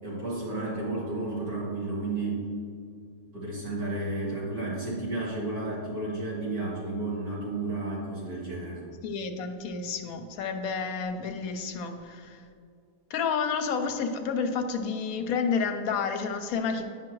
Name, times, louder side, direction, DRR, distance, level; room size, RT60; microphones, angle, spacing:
voice 1, 0.0-2.5 3.3-8.8, right 2 dB, 65° right, -8 dB, 2.7 m, -32 dB
voice 2, 9.0-12.4 13.1-16.8, left 5 dB, 70° left, 7 dB, 1.0 m, -30 dB
9.6 x 5.8 x 3.1 m, 2.3 s
omnidirectional pair, 1.7 m